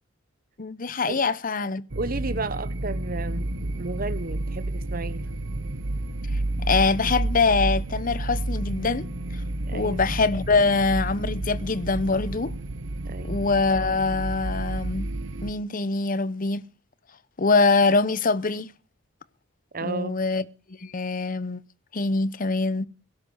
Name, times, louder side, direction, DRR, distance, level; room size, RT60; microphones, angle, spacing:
voice 1, 0.6-1.9 6.3-9.1 9.3-9.4 9.7-12.5 13.2-15.1 15.4-16.6 17.4-18.7 19.8-21.6 21.9-22.9, left 3 dB, 45° left, 0.9 m, -24 dB
sound 1, 1.9-15.5, right 2 dB, 70° right, 1.2 m, -30 dB
voice 2, 2.0-5.2 9.6-10.1 13.0-13.4 19.7-20.2, right 3 dB, 45° right, 1.1 m, -33 dB
17.5 x 10.5 x 6.4 m
head